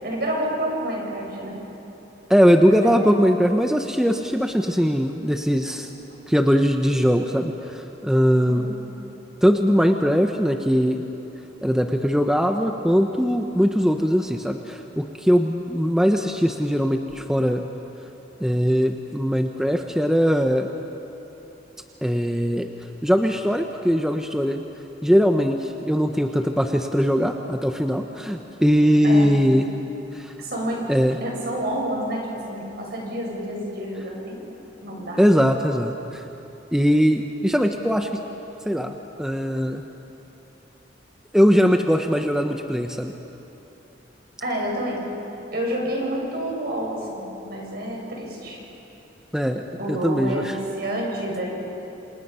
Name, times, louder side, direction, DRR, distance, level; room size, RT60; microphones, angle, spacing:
voice 1, 0.0-1.6 2.8-2.9 5.6-5.8 8.5-8.8 29.0-29.3 30.4-30.8 31.2-35.2 44.4-45.0 45.5-48.6 49.8-51.5, right 1 dB, 60° right, -1 dB, 6.3 m, -29 dB
voice 2, 2.3-5.9 6.3-8.7 9.4-11.0 11.6-17.7 18.4-20.7 22.0-22.7 23.0-24.6 25.0-29.7 30.1-30.3 30.9-31.2 35.2-36.2 36.7-38.2 38.7-39.8 41.3-43.1 49.3-50.5, equal, 5° right, 4 dB, 0.8 m, -20 dB
27.5 x 27.0 x 5.6 m, 3.0 s
head